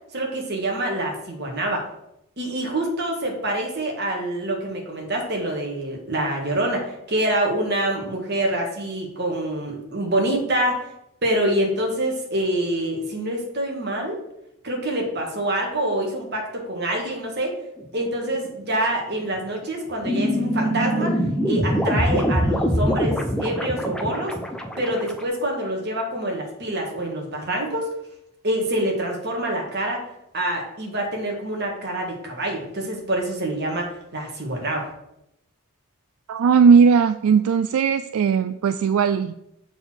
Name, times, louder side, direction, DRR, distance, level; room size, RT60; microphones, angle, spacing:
voice 1, 0.1-1.8 2.4-10.8 11.2-14.2 14.6-17.6 17.9-24.4 24.8-27.9 28.4-30.0 30.3-34.9, right 1 dB, 50° right, 1 dB, 1.7 m, -26 dB
sound 1, 17.8-18.1 18.5-18.7 19.2-19.3 19.7-19.8 20.1-25.2, equal, 5° left, 0.5 m, -24 dB
voice 2, 36.3-39.3, right 6 dB, 80° right, 11 dB, 0.3 m, -17 dB
7.0 x 4.0 x 6.2 m, 0.82 s
head